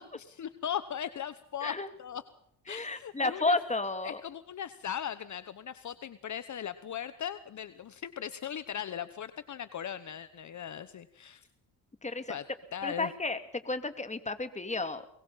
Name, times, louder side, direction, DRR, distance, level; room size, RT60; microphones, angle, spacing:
voice 1, 0.0-2.2 2.7-3.6 4.0-11.5 12.3-12.4 12.7-13.1, left 9 dB, 50° left, 13 dB, 1.2 m, -38 dB
voice 2, 2.7-4.2 12.0-12.3 12.8-13.4 13.6-15.1, left 3 dB, 20° left, 9 dB, 2.6 m, -32 dB
22.5 x 22.0 x 5.8 m, 0.69 s
cardioid pair, 85°, 38 cm